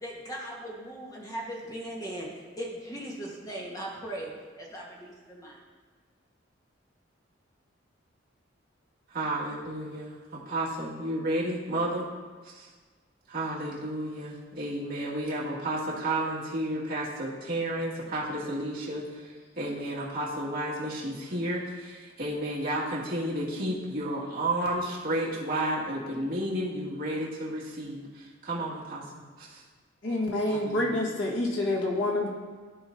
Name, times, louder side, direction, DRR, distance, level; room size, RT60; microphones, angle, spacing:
voice 1, 0.0-4.3 4.6-5.6, right 1 dB, 20° left, -2 dB, 1.4 m, -38 dB
voice 2, 9.1-12.0 12.5-12.7 13.3-29.0 29.4-29.6 30.5-31.0, right 1 dB, 50° right, -7 dB, 2.1 m, -32 dB
voice 3, 30.0-32.3, left 1 dB, 75° left, -2 dB, 1.5 m, -27 dB
14.0 x 4.9 x 2.7 m, 1.5 s
head